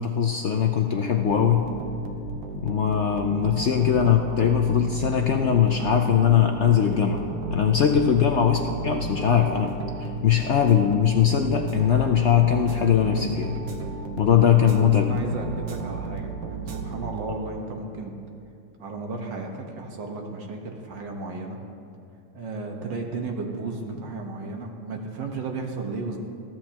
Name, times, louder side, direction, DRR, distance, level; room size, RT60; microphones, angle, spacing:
voice 1, 0.0-1.6 2.6-9.7 10.0-13.5 14.2-15.0, left 8 dB, 75° left, 3 dB, 0.6 m, -21 dB
sound 1, 1.2-17.6, right 4 dB, 55° right, 1.3 m, -34 dB
voice 2, 14.7-18.1 18.8-21.6 22.3-26.2, right 3 dB, 75° right, 2 dB, 1.9 m, -34 dB
21.0 x 14.5 x 2.9 m, 2.5 s
omnidirectional pair, 2.0 m